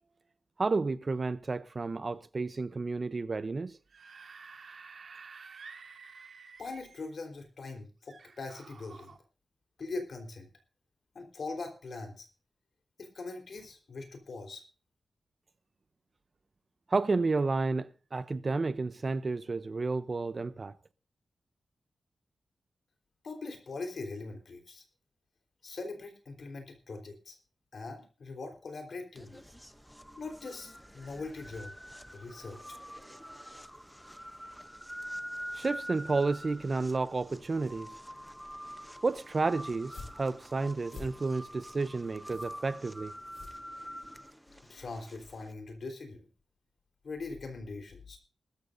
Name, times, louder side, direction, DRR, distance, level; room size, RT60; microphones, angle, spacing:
voice 1, 0.6-3.8 16.9-20.7 35.5-38.0 39.0-43.1, right 3 dB, 40° right, 0.6 m, -31 dB
Screaming / Screech, 3.7-7.1 8.1-9.2, right 5 dB, 65° right, 1.8 m, -51 dB
voice 2, 6.6-9.2 9.8-10.5 11.1-12.3 13.0-14.6 23.2-24.8 25.6-27.4 27.7-29.4 30.2-31.8 32.1-32.8 44.7-46.3 47.0-48.2, left 3 dB, 60° left, 3.9 m, -41 dB
sound 1, 29.2-45.5, equal, ahead, 0.7 m, -46 dB
sound 2, 39.7-44.2, left 4 dB, 75° left, 7.7 m, -50 dB
20.5 x 13.5 x 2.6 m
wide cardioid pair, 105°, 0 cm